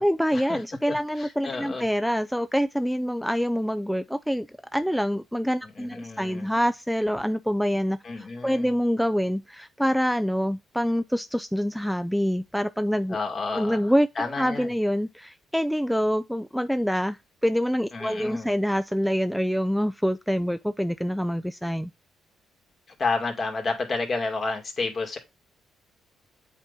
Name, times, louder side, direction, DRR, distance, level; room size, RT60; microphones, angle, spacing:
voice 1, 0.0-4.5 4.7-8.0 8.4-13.2 13.5-21.9, equal, ahead, 0.3 m, -26 dB
voice 2, 0.9-1.9 5.6-6.5 8.0-8.7 13.1-14.7 17.9-18.5 23.0-25.2, left 3 dB, 45° left, 2.4 m, -31 dB
8.1 x 4.2 x 3.6 m
cardioid pair, 90°, 0 cm